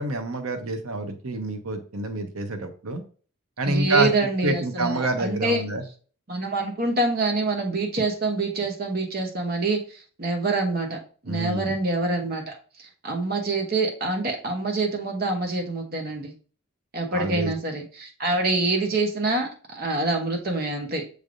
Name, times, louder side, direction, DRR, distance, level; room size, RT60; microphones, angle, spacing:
voice 1, 0.0-3.0 3.6-4.1 4.4-5.8 11.2-11.7 17.1-17.5, right 2 dB, 85° right, 6 dB, 0.8 m, -27 dB
voice 2, 3.6-5.6 6.3-11.0 11.2-12.5 12.8-16.3 16.9-21.0, right 2 dB, 45° right, 2 dB, 0.9 m, -26 dB
6.4 x 3.3 x 2.5 m, 0.40 s
head